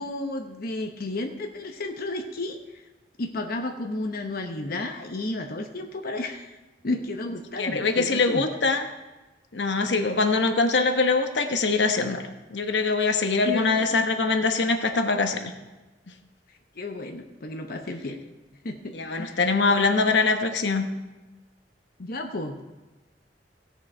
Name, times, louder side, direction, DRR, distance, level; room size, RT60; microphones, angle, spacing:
voice 1, 0.0-2.6 3.2-6.6 6.8-8.4 13.4-13.9 16.8-18.2 18.6-19.4 22.0-22.6, left 2 dB, 55° left, 4 dB, 0.9 m, -32 dB
voice 2, 7.6-8.8 9.5-12.2 12.5-15.5 18.9-20.8, left 3 dB, 85° left, 6 dB, 1.1 m, -23 dB
16.5 x 7.1 x 4.4 m, 1.1 s
head